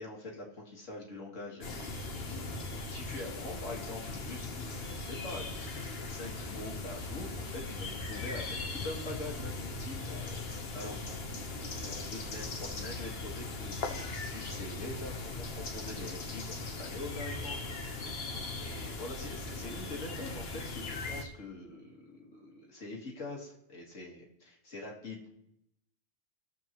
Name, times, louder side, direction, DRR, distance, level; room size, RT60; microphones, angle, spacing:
voice 1, 0.0-11.2 11.4-18.2 18.6-25.3, left 2 dB, 90° left, -1 dB, 2.1 m, -44 dB
sound 1, 1.6-21.2, left 3 dB, 55° left, 1.2 m, -39 dB
18.0 x 7.0 x 3.0 m, 0.82 s
omnidirectional pair, 1.2 m